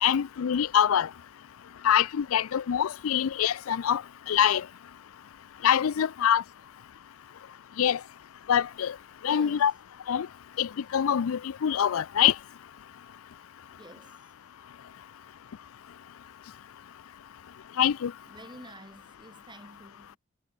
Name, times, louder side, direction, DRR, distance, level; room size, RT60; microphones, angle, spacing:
voice 1, 0.0-1.1 1.8-4.0 4.3-4.7 5.6-6.4 7.8-8.0 8.5-8.9 9.2-9.7 10.1-10.3 10.6-12.3 17.8-18.1, left 9 dB, 80° left, 0.4 m, -24 dB
voice 2, 9.3-9.7 13.7-14.4 15.1-15.2 17.3-17.5 18.2-20.2, right 1 dB, 20° right, 5.5 m, -51 dB
head